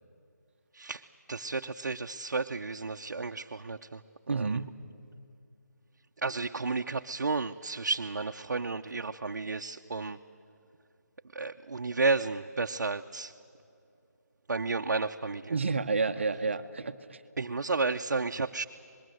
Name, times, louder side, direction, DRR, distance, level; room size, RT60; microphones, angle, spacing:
voice 1, 1.3-4.0 4.3-4.6 6.2-10.2 11.3-13.3 14.5-15.5 17.4-18.6, right 3 dB, 65° right, 4 dB, 0.7 m, -32 dB
voice 2, 4.3-4.7 15.5-17.2, right 4 dB, 40° right, 9 dB, 0.9 m, -30 dB
25.5 x 21.0 x 7.8 m, 2.6 s
figure-of-eight pair, 175°, 10 cm